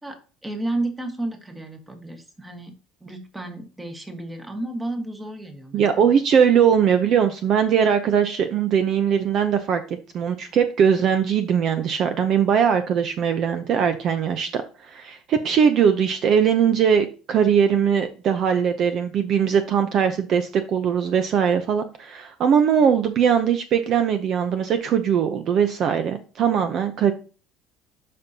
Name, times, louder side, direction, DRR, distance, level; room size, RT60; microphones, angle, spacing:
voice 1, 0.0-2.7 3.0-6.2, right 2 dB, 10° right, 4 dB, 1.4 m, -32 dB
voice 2, 5.7-9.8 10.1-27.1, right 7 dB, 40° right, 8 dB, 0.7 m, -20 dB
11.5 x 5.3 x 2.8 m, 0.35 s
cardioid pair, 155°, 0 cm